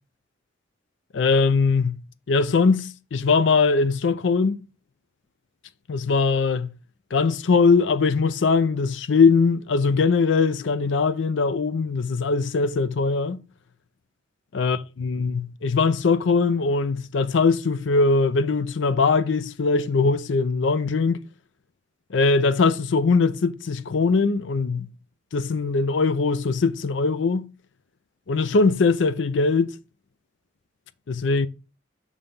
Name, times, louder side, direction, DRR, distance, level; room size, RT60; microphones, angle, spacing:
voice 1, 1.1-2.0 2.3-4.6 5.9-6.7 7.1-13.4 14.5-21.2 22.1-24.9 25.3-27.5 28.3-29.8 31.1-31.5, left 4 dB, 70° left, 0.5 m, -21 dB
7.1 x 3.3 x 5.3 m
head